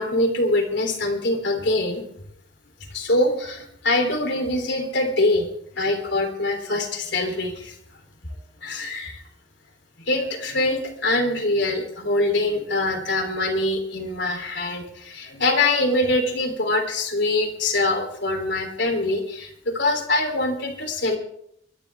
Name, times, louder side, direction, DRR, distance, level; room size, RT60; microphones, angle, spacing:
voice 1, 0.0-2.0 2.9-5.5 5.7-7.7 8.6-9.2 10.0-21.2, left 2 dB, 60° left, 4 dB, 3.3 m, -24 dB
24.0 x 12.0 x 3.5 m, 0.69 s
head